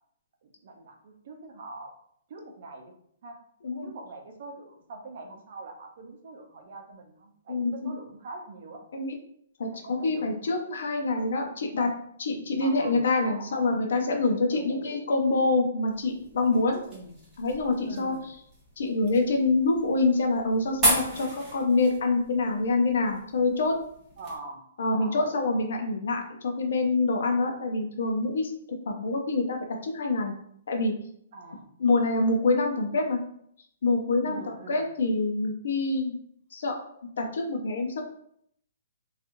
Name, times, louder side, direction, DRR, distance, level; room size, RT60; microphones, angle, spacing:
voice 1, 0.4-1.9 2.3-2.9 3.2-3.4 3.8-8.8 9.7-10.4 12.6-13.5 14.5-14.8 16.8-17.2 17.8-18.3 24.2-24.7 24.9-25.3 31.3-31.7 34.2-34.9, right 3 dB, 50° right, 3 dB, 0.6 m, -43 dB
voice 2, 7.5-7.9 8.9-9.1 9.6-11.9 12.2-16.8 17.4-18.1 18.8-23.8 24.8-28.5 28.9-29.6 29.8-30.3 30.7-30.9 31.8-33.2 33.8-36.2 36.5-36.8 37.2-38.0, left 3 dB, 70° left, 3 dB, 0.5 m, -26 dB
sound 1, 15.9-24.4, right 1 dB, 15° right, 1.1 m, -34 dB
2.8 x 2.4 x 2.6 m, 0.68 s
hypercardioid pair, 165°, 0 cm